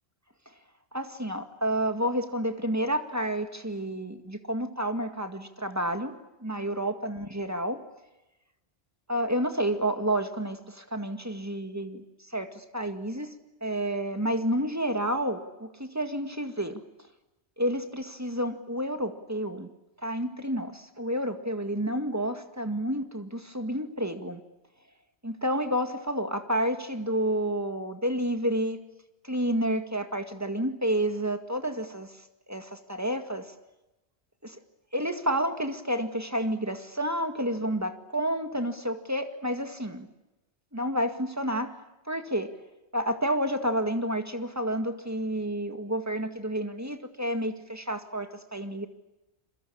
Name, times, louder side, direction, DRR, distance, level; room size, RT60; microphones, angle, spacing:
voice 1, 0.9-6.1 6.4-7.8 9.1-12.0 12.3-13.3 13.6-16.8 17.6-19.7 20.0-24.4 25.2-28.8 29.2-32.1 32.5-33.5 34.4-34.6 34.9-40.1 40.7-41.8 42.1-42.5 42.9-48.9, right 1 dB, 15° right, 7 dB, 2.0 m, -30 dB
28.5 x 22.5 x 8.6 m, 0.99 s
omnidirectional pair, 1.1 m